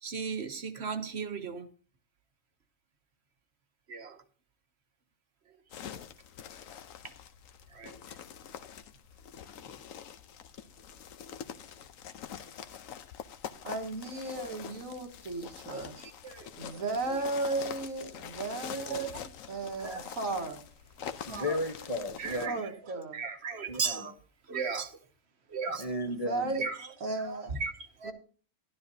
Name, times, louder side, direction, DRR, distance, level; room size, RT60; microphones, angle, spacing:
voice 1, 0.0-1.7 3.9-4.2 7.7-7.9 15.7-16.7 18.8-19.3 19.8-20.0 21.3-21.6 22.2-22.6 22.9-24.1 24.5-24.9 25.5-25.8 26.5-26.9 27.2-28.1, right 5 dB, 55° right, 8 dB, 1.2 m, -36 dB
sound 1, 5.7-22.5, left 8 dB, 85° left, 1.2 m, -45 dB
voice 2, 13.6-16.0 16.6-19.1 19.5-20.6 22.5-23.2 26.2-26.7 27.0-27.6 28.0-28.1, right 2 dB, 85° right, 3 dB, 1.9 m, -35 dB
voice 3, 21.3-22.6 23.7-24.1 25.8-26.6, left 1 dB, 30° left, 3 dB, 1.1 m, -34 dB
13.0 x 11.5 x 2.7 m, 0.41 s
omnidirectional pair, 1.4 m